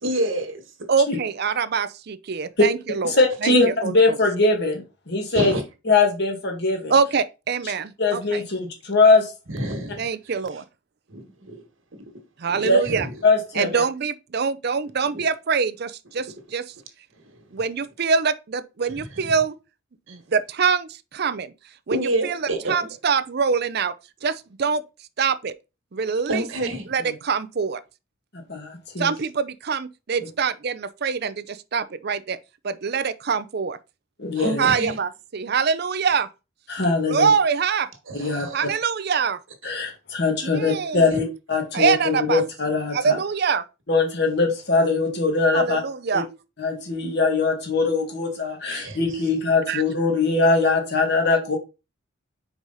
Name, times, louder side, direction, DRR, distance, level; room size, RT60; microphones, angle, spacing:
voice 1, 0.0-0.6 5.3-5.6 9.5-10.6 11.1-11.6 12.5-13.1 15.0-15.3 17.2-17.4 18.9-19.3 20.1-20.2 21.9-22.7 26.3-26.9 34.3-35.0 38.1-38.7 39.6-39.8 41.1-41.2 48.7-49.0, right 1 dB, 75° right, 1.7 m, -29 dB
voice 2, 0.9-3.1 3.4-4.0 6.9-8.4 10.0-10.6 12.4-13.1 13.6-16.3 16.5-16.6 17.5-19.6 20.1-21.5 21.9-22.4 22.7-23.9 24.2-24.8 25.2-25.5 25.9-26.4 26.9-27.8 29.0-32.4 32.6-33.8 34.6-36.3 37.1-37.9 38.5-39.4 40.5-41.1 41.7-42.4 42.9-43.6 45.5-46.3 49.7-49.8, right 5 dB, 50° right, 0.5 m, -24 dB
voice 3, 3.0-5.5 5.9-6.9 8.0-9.3 12.6-12.8 13.2-13.8 28.5-29.1 34.2-34.7 36.7-37.3 38.1-38.5 39.6-43.2 43.9-45.8 46.1-46.2 46.6-51.6, left 3 dB, 55° left, 1.8 m, -21 dB
5.2 x 4.7 x 4.0 m
head